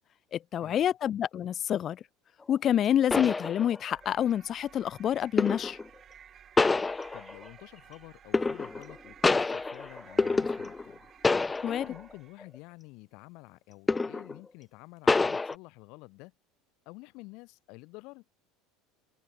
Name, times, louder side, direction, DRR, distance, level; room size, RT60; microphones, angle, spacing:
voice 1, 0.3-2.0 2.5-5.8 11.6-11.8, left 10 dB, 40° left, 1.2 m, -27 dB
sound 1, 2.5-2.6 3.1-4.0 5.4-5.9 6.6-7.5 8.3-8.9 9.2-11.0 11.2-12.0 12.4-12.6 13.9-14.4 15.1-15.5, left 3 dB, 15° left, 0.5 m, -27 dB
sound 2, 3.9-12.5, right 9 dB, 35° right, 6.9 m, -55 dB
voice 2, 7.1-11.1 11.4-16.3 16.9-18.2, left 25 dB, 65° left, 3.4 m, -49 dB
supercardioid pair, 100°, 0 cm